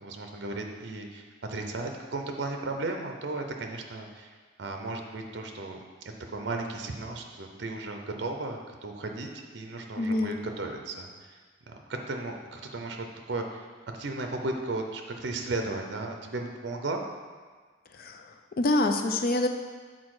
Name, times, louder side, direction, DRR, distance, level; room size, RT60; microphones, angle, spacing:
voice 1, 0.0-4.3 4.6-5.8 6.3-11.4 11.7-13.7 13.9-17.0, right 2 dB, 60° right, 3 dB, 0.6 m, -35 dB
voice 2, 10.0-10.4 18.0-18.2 18.6-19.5, left 2 dB, 50° left, 6 dB, 0.4 m, -25 dB
6.3 x 4.0 x 4.8 m, 1.5 s
head